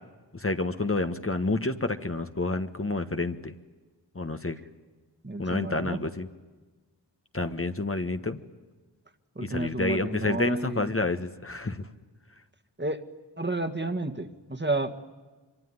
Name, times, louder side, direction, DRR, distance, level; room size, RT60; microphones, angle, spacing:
voice 1, 0.3-3.5 4.1-4.6 5.4-6.3 7.3-8.4 9.4-11.8, left 2 dB, 30° left, 8 dB, 1.4 m, -29 dB
voice 2, 5.2-6.0 9.4-10.9 12.8-13.0 13.4-15.0, right 2 dB, 25° right, 7 dB, 2.0 m, -31 dB
24.5 x 24.5 x 9.8 m, 1.3 s
cardioid pair, 45°, 42 cm